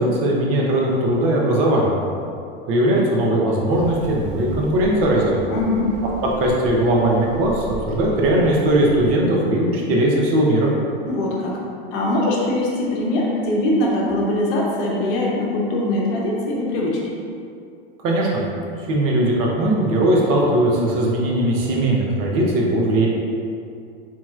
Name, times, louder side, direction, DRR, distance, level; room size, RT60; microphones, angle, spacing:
voice 1, 0.0-1.9 2.7-5.4 6.4-10.7 18.0-18.3 18.9-23.1, right 1 dB, 45° right, -3 dB, 0.9 m, -19 dB
sound 1, 3.7-9.1, right 1 dB, 80° right, 0.5 m, -36 dB
voice 2, 5.5-5.9 11.1-11.6 11.9-17.0, left 1 dB, 60° left, -3 dB, 0.9 m, -22 dB
4.2 x 3.0 x 2.4 m, 2.4 s
hypercardioid pair, 110°, 31 cm